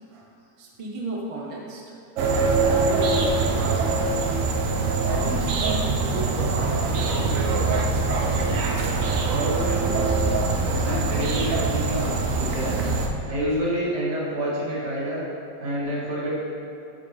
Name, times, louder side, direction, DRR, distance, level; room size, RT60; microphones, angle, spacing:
voice 1, 0.6-2.0 2.2-4.0 4.7-7.9 8.4-8.6 9.3-9.4 10.0-11.0, right 1 dB, 25° right, -3 dB, 0.8 m, -35 dB
sound 1, 2.2-13.1, right 3 dB, 60° right, 0.9 m, -23 dB
voice 2, 9.3-10.3 10.8-12.8 13.3-15.2 15.6-16.3, equal, 80° right, -8 dB, 2.5 m, -28 dB
8.5 x 6.2 x 3.5 m, 2.6 s
omnidirectional pair, 1.8 m